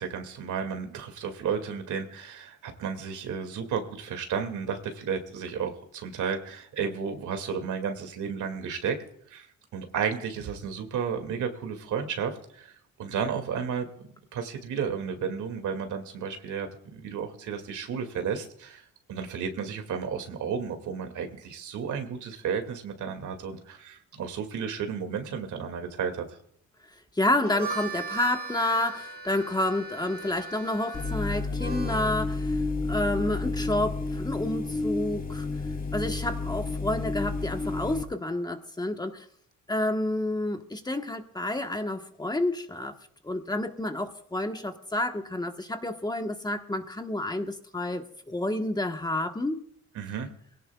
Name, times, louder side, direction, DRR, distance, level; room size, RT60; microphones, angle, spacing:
voice 1, 0.0-9.0 9.3-9.5 9.7-12.7 13.0-26.4 49.9-50.3, right 6 dB, 75° right, 6 dB, 2.4 m, -33 dB
voice 2, 27.2-32.6 32.9-35.5 35.9-39.3 39.7-42.9 43.2-49.6, left 1 dB, 15° left, 5 dB, 1.3 m, -29 dB
Harmonica, 27.3-32.2, right 4 dB, 30° right, 1.7 m, -39 dB
sound 1, 30.9-38.0, left 3 dB, 30° left, 2.9 m, -31 dB
22.5 x 17.5 x 2.4 m, 0.68 s
cardioid pair, 90°, 30 cm